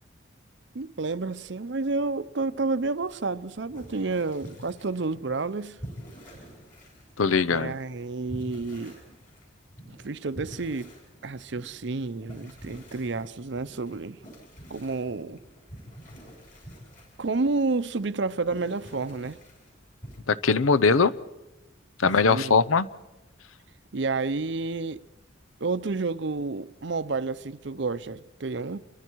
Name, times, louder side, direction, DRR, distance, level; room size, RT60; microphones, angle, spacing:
voice 1, 0.7-5.8 7.5-9.0 9.9-10.9 11.2-14.2 14.7-15.4 17.2-19.4 22.0-22.6 23.9-25.0 25.6-28.8, right 3 dB, 60° right, 0.6 m, -30 dB
sound 1, 3.3-20.2, equal, 40° left, 7.0 m, -47 dB
voice 2, 7.2-7.8 20.3-21.1 22.0-22.9, left 4 dB, 85° left, 0.7 m, -21 dB
28.0 x 23.5 x 4.6 m
head